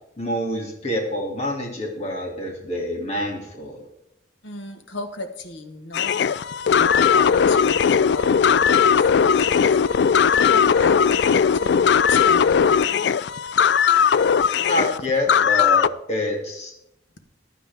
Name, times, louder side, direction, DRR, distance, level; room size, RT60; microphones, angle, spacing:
voice 1, 0.2-3.9 14.6-16.7, left 1 dB, 35° left, -1 dB, 2.5 m, -27 dB
voice 2, 4.4-9.8 10.3-13.2, left 2 dB, 85° left, 6 dB, 1.4 m, -35 dB
sound 1, 5.9-15.9, left 7 dB, 65° left, 0.3 m, -18 dB
15.0 x 11.0 x 3.5 m, 0.81 s
head